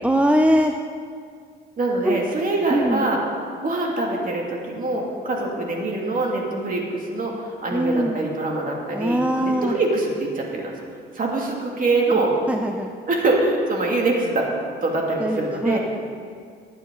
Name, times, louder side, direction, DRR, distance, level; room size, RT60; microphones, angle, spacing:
voice 1, 0.0-0.8 2.0-2.2 2.7-3.1 7.7-8.2 8.9-9.8 12.1-12.2 12.5-12.9 15.2-15.8, equal, 5° right, 5 dB, 0.6 m, -21 dB
voice 2, 1.8-3.2 3.6-7.3 7.6-10.7 11.1-12.3 13.1-14.5 14.8-15.8, right 2 dB, 45° right, -1 dB, 2.8 m, -24 dB
19.5 x 9.0 x 4.0 m, 2.1 s
cardioid pair, 90°, 20 cm